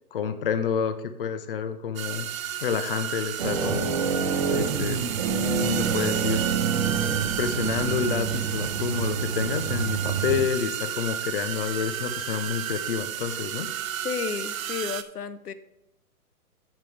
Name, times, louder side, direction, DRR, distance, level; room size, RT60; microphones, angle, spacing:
voice 1, 0.1-2.3 2.6-5.0 5.6-6.4 7.4-13.7, left 7 dB, 40° left, 10 dB, 0.6 m, -29 dB
sound 1, 2.0-15.0, right 10 dB, 60° right, 0.8 m, -32 dB
sound 2, 3.4-10.5, right 6 dB, 30° right, 0.8 m, -27 dB
voice 2, 14.0-15.5, left 7 dB, 80° left, 13 dB, 1.0 m, -32 dB
14.0 x 5.4 x 3.3 m, 0.93 s
hypercardioid pair, 160°, 46 cm